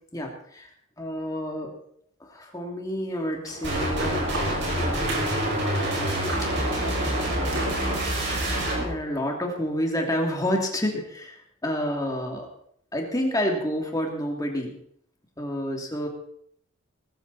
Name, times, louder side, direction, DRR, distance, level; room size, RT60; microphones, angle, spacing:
voice 1, 0.1-0.7 1.0-1.7 2.2-4.2 4.8-5.3 8.8-12.5 12.9-14.7 15.4-16.1, equal, 15° left, 1 dB, 2.9 m, -29 dB
sound 1, 3.4-8.6, right 2 dB, 75° right, 5.8 m, -37 dB
sound 2, 3.6-8.8, right 1 dB, 50° right, 6.0 m, -26 dB
20.0 x 14.0 x 4.3 m, 0.66 s
head